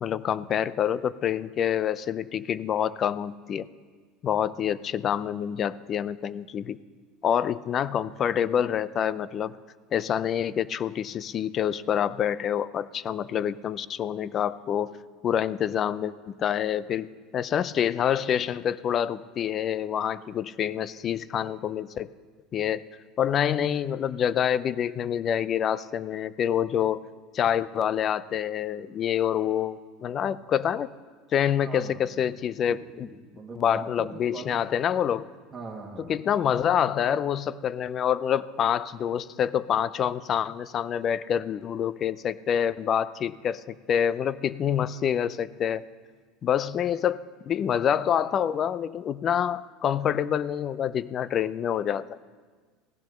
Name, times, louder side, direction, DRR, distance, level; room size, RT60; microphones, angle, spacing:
voice 1, 0.0-3.7 4.2-6.8 7.2-9.6 9.9-14.9 15.2-22.1 22.5-22.8 23.2-27.0 27.3-30.9 31.3-33.1 33.6-35.3 36.1-45.8 46.4-52.2, left 9 dB, 40° left, 18 dB, 0.4 m, -27 dB
voice 2, 31.6-32.2 32.9-34.6 35.5-36.1, right 4 dB, 25° right, -3 dB, 1.7 m, -42 dB
15.5 x 10.5 x 6.5 m, 1.5 s
supercardioid pair, 115°, 0 cm